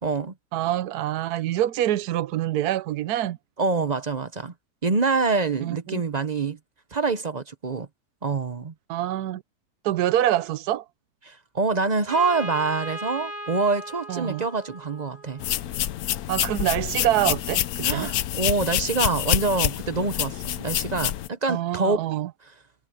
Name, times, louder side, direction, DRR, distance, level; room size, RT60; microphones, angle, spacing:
voice 1, 0.0-0.3 3.6-4.5 4.8-6.6 6.9-7.9 8.2-8.7 11.2-15.4 17.8-22.0, right 4 dB, 35° right, 0.8 m, -25 dB
voice 2, 0.5-3.4 5.6-6.0 8.9-9.4 9.8-10.8 14.1-14.4 16.3-18.1 21.5-22.3, right 13 dB, 80° right, 1.2 m, -25 dB
Trumpet, 12.1-15.8, right 1 dB, 60° right, 2.6 m, -37 dB
sound 1, 15.4-21.3, left 12 dB, 75° left, 1.1 m, -27 dB
omnidirectional pair, 1.7 m